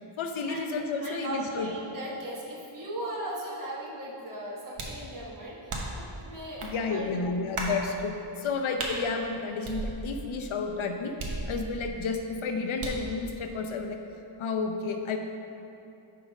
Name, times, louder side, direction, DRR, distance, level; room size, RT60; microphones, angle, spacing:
voice 1, 0.2-1.7 6.6-11.2 11.5-14.0 14.4-15.2, left 4 dB, 70° left, 4 dB, 0.8 m, -31 dB
voice 2, 1.0-6.6 6.9-7.1, right 1 dB, 40° right, -5 dB, 1.5 m, -38 dB
sound 1, 4.8-5.1 5.7-6.1 6.6-6.8 7.6-7.8 8.8-9.0 9.6-10.3 11.2-11.9 12.8-13.1, right 2 dB, 80° right, 1.2 m, -35 dB
8.9 x 3.8 x 5.3 m, 2.8 s
wide cardioid pair, 150°, 49 cm